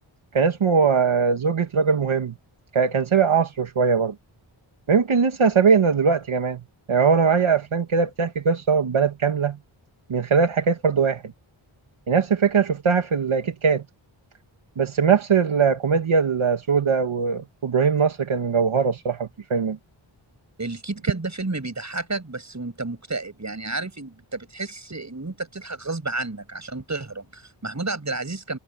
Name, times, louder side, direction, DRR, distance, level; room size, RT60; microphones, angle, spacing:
voice 1, 0.3-2.3 2.7-4.1 4.9-6.6 6.9-9.6 10.1-11.2 12.1-13.8 14.8-19.8, right 6 dB, 70° right, 2.0 m, -21 dB
voice 2, 20.6-28.6, right 3 dB, 35° right, 7.9 m, -31 dB
wide cardioid pair, 85°, 50 cm